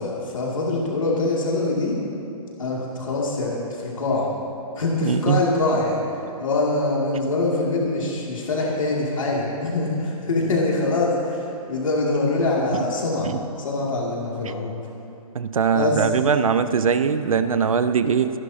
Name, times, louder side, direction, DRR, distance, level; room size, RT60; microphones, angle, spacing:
voice 1, 0.0-2.0 2.6-4.3 4.8-6.0 6.4-13.3 13.6-14.8 15.7-16.1, left 2 dB, 60° left, -4 dB, 2.6 m, -24 dB
voice 2, 5.0-5.4 12.7-12.9 13.2-13.4 14.4-14.5 15.3-18.4, right 6 dB, 65° right, 11 dB, 0.7 m, -21 dB
25.5 x 11.5 x 2.9 m, 2.6 s
hypercardioid pair, 180°, 19 cm